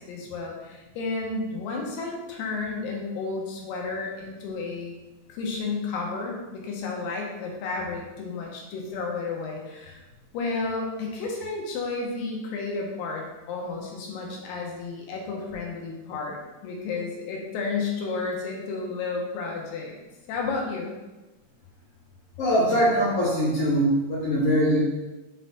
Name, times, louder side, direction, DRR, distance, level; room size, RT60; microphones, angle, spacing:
voice 1, 0.0-4.9 5.3-10.0 10.3-20.0 20.3-20.9, left 4 dB, 70° left, 0 dB, 2.3 m, -32 dB
voice 2, 22.4-24.8, equal, 50° left, -9 dB, 1.9 m, -22 dB
6.2 x 3.9 x 4.0 m, 1.1 s
omnidirectional pair, 4.9 m